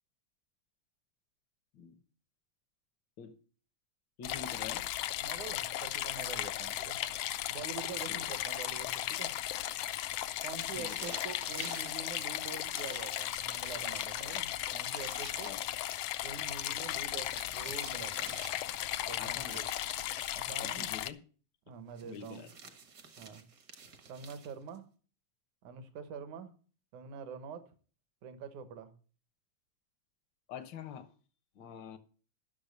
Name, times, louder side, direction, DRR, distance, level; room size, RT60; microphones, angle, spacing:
sound 1, 4.2-21.1, left 13 dB, 90° left, 1.4 m, -36 dB
voice 1, 4.2-4.9 8.1-8.2 10.7-11.1 15.4-15.6 19.2-19.6 20.6-21.2 22.0-22.7 30.5-31.1 31.6-32.0, left 7 dB, 70° left, 9 dB, 1.0 m, -45 dB
voice 2, 5.2-7.0 7.5-9.3 10.4-15.5 16.2-18.3 19.1-19.7 20.3-20.9 21.7-22.4 23.2-23.4 24.1-24.9 25.6-26.5 26.9-27.6 28.2-28.9, right 6 dB, 70° right, 10 dB, 2.6 m, -45 dB
sound 2, 10.0-12.0 12.7-15.6 16.9-18.7 19.4-20.4 22.0-24.8, right 5 dB, 55° right, 1.1 m, -51 dB
11.5 x 6.6 x 6.7 m, 0.40 s
omnidirectional pair, 3.6 m